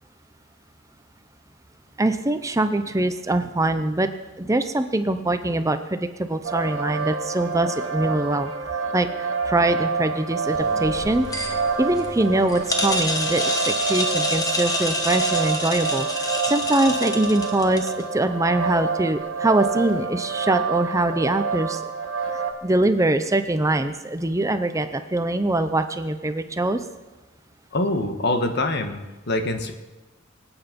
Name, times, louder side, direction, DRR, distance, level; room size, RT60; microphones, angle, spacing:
voice 1, 2.0-4.1 4.4-8.5 8.9-21.8 22.6-26.8, right 2 dB, 15° right, 9 dB, 0.6 m, -23 dB
sound 1, 6.4-22.5, right 4 dB, 90° right, 1.8 m, -28 dB
sound 2, 10.5-18.0, left 1 dB, 20° left, 1.5 m, -28 dB
voice 2, 27.7-29.7, left 2 dB, 55° left, 6 dB, 1.5 m, -24 dB
25.5 x 9.0 x 5.2 m, 1.1 s
head